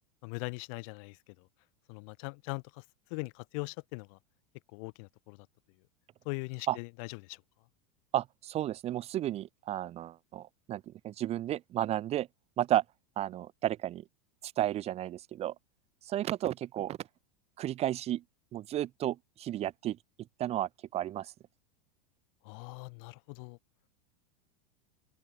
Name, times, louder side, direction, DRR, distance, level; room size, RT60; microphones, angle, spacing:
voice 1, 0.2-1.2 1.9-2.8 3.1-4.2 4.7-5.4 6.3-7.4 22.4-23.6, left 34 dB, 55° left, 3.6 m, -40 dB
voice 2, 8.1-12.3 12.6-12.8 13.2-14.0 14.4-15.5 16.0-17.0 17.6-18.2 18.5-20.0 20.4-21.3, right 13 dB, 30° right, 1.6 m, -33 dB
open air
supercardioid pair, 140°, 20 cm